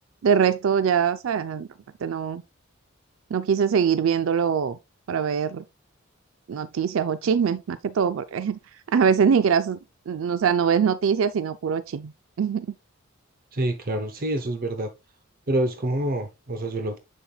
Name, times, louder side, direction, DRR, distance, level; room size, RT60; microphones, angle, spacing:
voice 1, 0.2-1.7 2.0-2.4 3.3-4.8 5.1-5.6 6.5-8.6 8.9-9.8 10.1-12.1 12.4-12.7, right 7 dB, 70° right, 0.4 m, -23 dB
voice 2, 13.5-14.9 15.5-17.0, right 1 dB, 45° right, 0.8 m, -27 dB
7.3 x 7.0 x 2.3 m
head